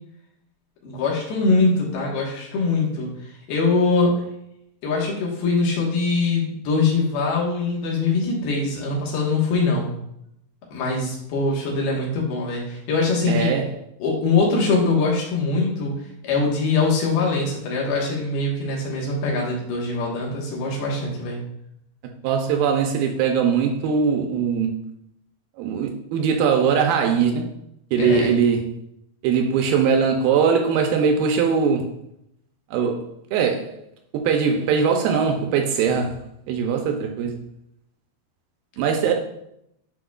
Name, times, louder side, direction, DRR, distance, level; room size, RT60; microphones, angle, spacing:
voice 1, 0.8-4.2 4.8-9.9 10.7-13.6 14.0-15.9 16.2-21.4 28.0-28.4, left 3 dB, 80° left, 3.3 m, -22 dB
voice 2, 13.3-13.7 22.2-24.7 25.6-27.5 27.9-28.7 29.2-31.9 32.7-33.0 33.3-33.7 34.1-36.2 36.5-37.3 38.8-39.1, right 6 dB, 80° right, 2.3 m, -21 dB
10.0 x 4.4 x 2.3 m
omnidirectional pair, 4.4 m